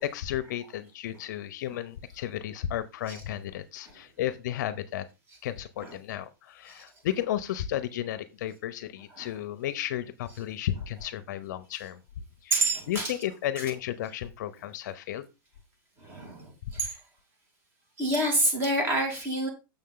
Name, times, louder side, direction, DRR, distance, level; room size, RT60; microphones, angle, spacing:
voice 1, 0.0-5.1 5.4-12.0 12.4-15.3, left 12 dB, 55° left, 13 dB, 0.8 m, -33 dB
voice 2, 12.5-13.1 16.0-17.0 18.0-19.5, right 1 dB, 20° right, 3 dB, 2.5 m, -28 dB
7.0 x 6.8 x 3.8 m, 0.27 s
supercardioid pair, 160°, 12 cm